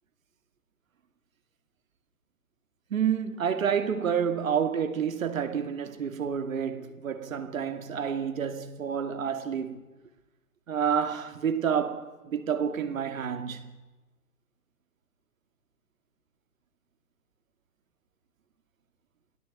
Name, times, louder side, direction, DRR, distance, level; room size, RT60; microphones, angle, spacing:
voice 1, 2.9-9.8 10.7-13.7, right 7 dB, 55° right, 2.5 m, -29 dB
29.0 x 17.5 x 8.4 m
figure-of-eight pair, 130°, 47 cm